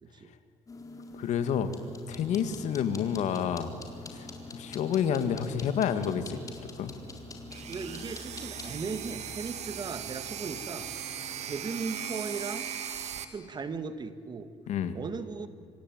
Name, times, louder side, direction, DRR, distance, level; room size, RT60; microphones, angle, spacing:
voice 1, 0.0-0.3 7.7-10.9 11.4-12.7 13.3-14.5 14.9-15.5, right 4 dB, 35° right, 11 dB, 1.9 m, -37 dB
sound 1, 0.7-8.7, left 2 dB, 30° left, 4.1 m, -45 dB
voice 2, 1.1-1.7 2.1-3.7 4.1-6.4 6.8-6.9 14.7-15.0, left 8 dB, 75° left, 10 dB, 2.2 m, -29 dB
sound 2, 2.1-11.5, left 4 dB, 50° left, 4.2 m, -50 dB
sound 3, 7.5-13.2, right 9 dB, 65° right, 2.2 m, -38 dB
26.5 x 25.0 x 9.2 m, 2.5 s
cardioid pair, 100°, 12 cm